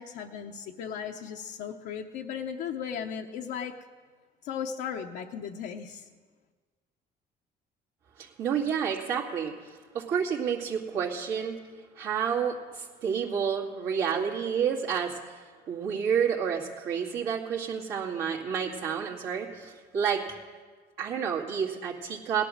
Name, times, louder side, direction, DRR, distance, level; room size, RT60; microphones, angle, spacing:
voice 1, 0.0-3.7 4.4-6.1, left 7 dB, 85° left, 1 dB, 0.8 m, -36 dB
voice 2, 8.2-11.6 12.0-20.3 21.0-22.5, right 7 dB, 80° right, -5 dB, 2.3 m, -30 dB
18.0 x 11.0 x 6.5 m, 1.5 s
cardioid pair, 110°, 17 cm